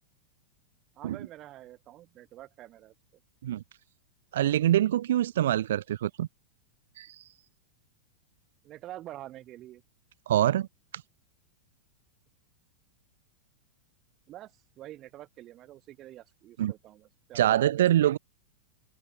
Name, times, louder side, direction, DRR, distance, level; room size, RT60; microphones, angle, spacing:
voice 1, 1.0-3.2 8.6-9.8 14.3-17.9, right 14 dB, 25° right, 7.1 m, -47 dB
voice 2, 4.3-6.3 7.0-7.3 10.3-10.7 16.6-16.7 17.3-18.2, right 12 dB, 75° right, 1.2 m, -25 dB
open air
supercardioid pair, 165°, 0 cm